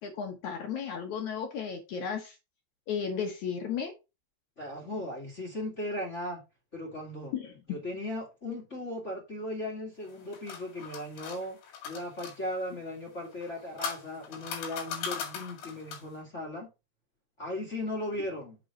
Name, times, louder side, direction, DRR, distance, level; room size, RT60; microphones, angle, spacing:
voice 1, 0.0-2.4 2.9-3.9 7.3-7.8, left 7 dB, 70° left, 1.9 m, -34 dB
voice 2, 4.6-6.4 6.7-7.3 7.7-11.6 11.8-16.7 17.4-18.6, left 1 dB, 40° left, 1.0 m, -37 dB
sound 1, 10.0-12.4 13.3-16.2, left 7 dB, 85° left, 4.2 m, -39 dB
7.7 x 3.1 x 5.7 m
omnidirectional pair, 4.9 m